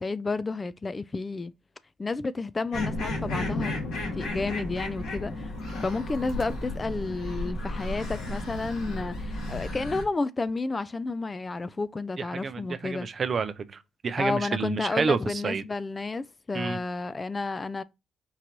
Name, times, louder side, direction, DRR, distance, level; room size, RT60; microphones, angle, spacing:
voice 1, 0.0-1.5 2.0-3.7 4.1-5.5 5.8-13.1 14.2-17.8, left 3 dB, 25° left, 0.3 m, -31 dB
sound 1, 2.7-10.0, left 1 dB, 90° left, 1.7 m, -33 dB
voice 2, 12.2-15.6 16.5-16.8, right 5 dB, 45° right, 0.4 m, -29 dB
4.6 x 2.5 x 2.8 m
cardioid pair, 90°, 0 cm